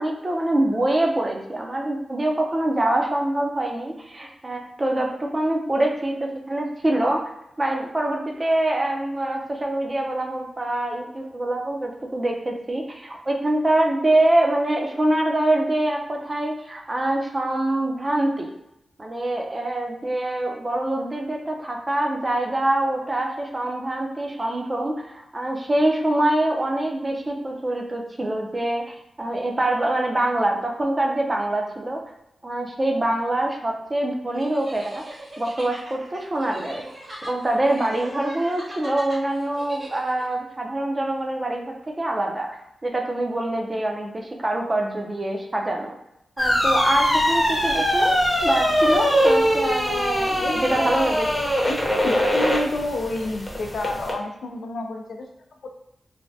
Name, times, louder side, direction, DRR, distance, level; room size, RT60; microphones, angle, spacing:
voice 1, 0.0-7.2 7.6-18.5 19.0-32.0 32.4-35.0 35.4-36.9 37.2-42.5 42.8-46.0 46.4-51.3, right 1 dB, 25° right, 1 dB, 0.5 m, -24 dB
sound 1, 34.3-40.4, right 1 dB, 50° right, 1.1 m, -39 dB
sound 2, 46.4-54.1, equal, 15° left, 0.7 m, -22 dB
voice 2, 50.4-50.9 51.7-55.3 55.6-55.7, left 2 dB, 80° left, 2 dB, 0.4 m, -29 dB
3.2 x 2.1 x 2.6 m, 0.84 s
wide cardioid pair, 85°, 0 cm